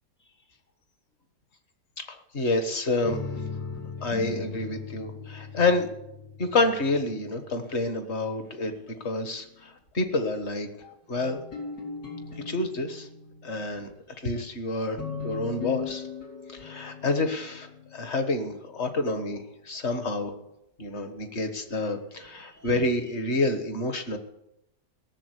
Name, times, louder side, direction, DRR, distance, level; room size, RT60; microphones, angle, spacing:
voice 1, 2.0-3.2 4.0-5.9 6.4-10.7 11.1-11.4 12.5-13.1 13.4-13.9 14.2-16.1 16.5-20.3 20.8-24.2, left 2 dB, 40° left, 7 dB, 1.6 m, -28 dB
sound 1, 3.0-7.6 8.4-9.5 10.4-13.9 14.6-19.3 21.3-21.4 22.1-22.8, left 5 dB, 85° left, 3.5 m, -39 dB
17.5 x 7.4 x 9.7 m, 0.85 s
omnidirectional pair, 1.8 m